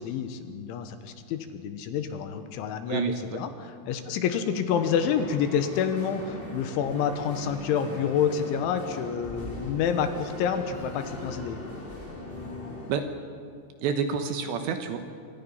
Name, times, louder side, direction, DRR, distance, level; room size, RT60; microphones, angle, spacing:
voice 1, 0.0-11.6, left 7 dB, 75° left, 8 dB, 3.3 m, -28 dB
voice 2, 2.9-3.4 12.9-13.0 13.8-15.0, right 6 dB, 70° right, 7 dB, 3.0 m, -28 dB
sound 1, 4.7-13.0, left 2 dB, 15° left, 2.0 m, -40 dB
26.5 x 26.0 x 5.6 m, 2.3 s
omnidirectional pair, 5.9 m